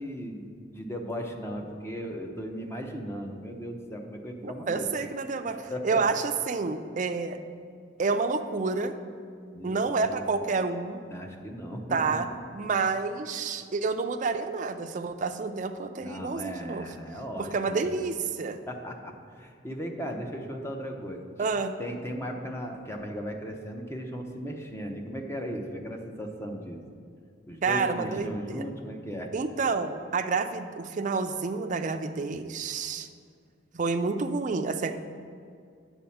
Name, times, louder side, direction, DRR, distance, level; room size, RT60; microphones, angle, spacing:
voice 1, 0.0-4.9 5.7-6.0 9.5-10.2 11.1-12.2 16.0-17.9 18.7-21.5 21.8-26.8 27.5-29.3, equal, 15° left, 2 dB, 0.7 m, -37 dB
voice 2, 4.4-7.4 8.0-8.9 9.6-11.0 11.9-12.3 12.6-16.9 17.4-18.6 21.4-21.7 27.6-28.6 29.3-33.1 33.7-34.9, right 4 dB, 45° right, 7 dB, 0.5 m, -29 dB
9.0 x 4.2 x 7.1 m, 2.3 s
head